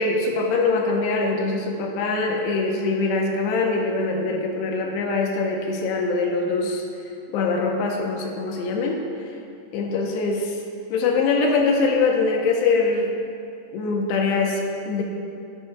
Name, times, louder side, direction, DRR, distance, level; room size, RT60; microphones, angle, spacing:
voice 1, 0.0-6.8 7.3-9.0 9.7-10.6 10.9-13.1 13.7-15.0, left 3 dB, 90° left, 1 dB, 3.0 m, -23 dB
13.5 x 12.5 x 2.4 m, 2.5 s
omnidirectional pair, 4.7 m